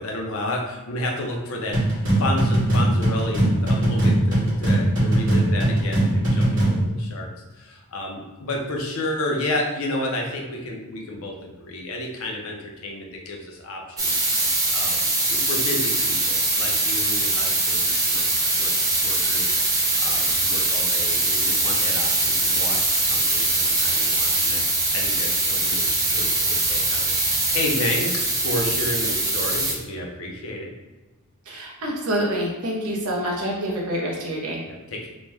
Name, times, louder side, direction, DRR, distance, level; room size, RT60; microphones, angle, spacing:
voice 1, 0.0-7.3 7.5-14.2 14.7-18.3 18.5-18.7 19.0-19.6 20.0-24.6 24.9-30.7 34.6-35.1, left 1 dB, 65° left, 0 dB, 0.6 m, -31 dB
sound 1, 1.7-6.8, right 1 dB, 55° right, 1.3 m, -20 dB
sound 2, 14.0-29.7, right 2 dB, 15° right, 0.4 m, -22 dB
voice 2, 31.5-34.6, equal, 80° right, -2 dB, 0.8 m, -27 dB
3.0 x 2.1 x 3.3 m, 1.1 s
head